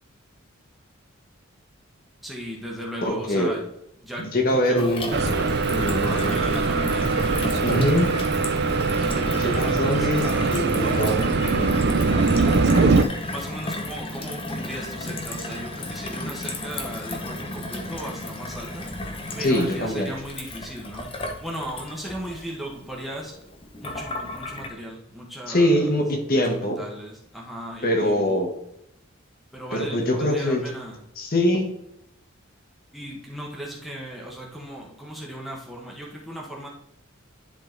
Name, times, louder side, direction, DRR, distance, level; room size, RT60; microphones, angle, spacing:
voice 1, 2.2-3.6 4.0-4.9 5.9-7.4 8.9-10.7 13.2-18.9 19.3-21.1 21.4-23.3 23.8-25.9 26.3-28.4 29.5-31.0 32.9-36.7, equal, ahead, -3 dB, 1.2 m, -36 dB
voice 2, 3.0-3.5 4.2-5.1 5.7-6.3 7.6-8.1 9.4-10.2 10.5-11.2 11.5-11.7 19.4-20.1 25.5-26.8 27.8-28.5 29.7-30.6 31.2-31.7, left 1 dB, 45° left, 3 dB, 1.2 m, -23 dB
Gurgling / Water tap faucet / Sink (filling or washing), 4.8-24.7, left 2 dB, 25° left, 0.9 m, -34 dB
sound 1, 5.1-13.0, right 4 dB, 50° right, 0.5 m, -22 dB
10.5 x 3.9 x 3.9 m, 0.79 s
head